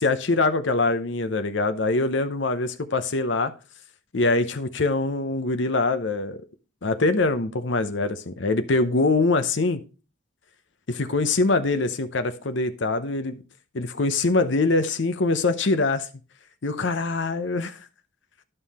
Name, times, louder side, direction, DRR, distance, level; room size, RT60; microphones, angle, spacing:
voice 1, 0.0-3.5 4.1-6.4 6.8-9.8 10.9-13.4 13.7-16.1 16.6-17.8, left 3 dB, 65° left, 0.8 m, -23 dB
11.0 x 5.5 x 4.2 m
head